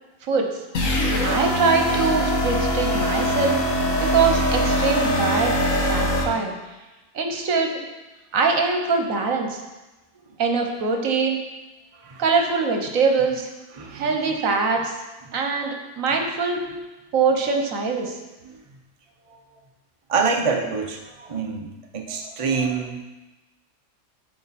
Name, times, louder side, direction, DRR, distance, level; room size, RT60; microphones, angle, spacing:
sound 1, 0.7-6.2, equal, 70° left, 1.6 m, -22 dB
voice 1, 1.2-3.6 4.1-5.5 5.9-6.5 7.1-7.8 8.3-9.6 10.4-11.4 12.2-13.5 13.9-14.9 15.3-16.7 17.1-18.1, right 4 dB, 70° right, 3 dB, 1.4 m, -23 dB
voice 2, 13.7-14.1 18.4-18.6 19.3-19.4 20.1-23.0, right 5 dB, 30° right, 1 dB, 0.7 m, -26 dB
12.5 x 4.2 x 4.2 m, 1.1 s
omnidirectional pair, 1.5 m